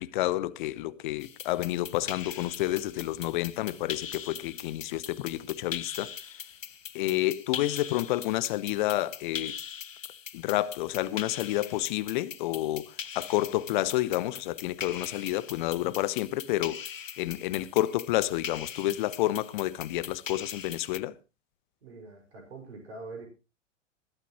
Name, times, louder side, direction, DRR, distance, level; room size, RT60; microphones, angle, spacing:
voice 1, 0.0-6.1 6.9-9.5 10.3-16.9 17.2-21.1, left 16 dB, 40° left, 0.9 m, -29 dB
sound 1, 1.2-21.0, left 8 dB, 80° left, 0.6 m, -41 dB
voice 2, 21.8-23.3, right 3 dB, 60° right, 5.4 m, -44 dB
20.5 x 12.5 x 3.0 m
figure-of-eight pair, 100°, 38 cm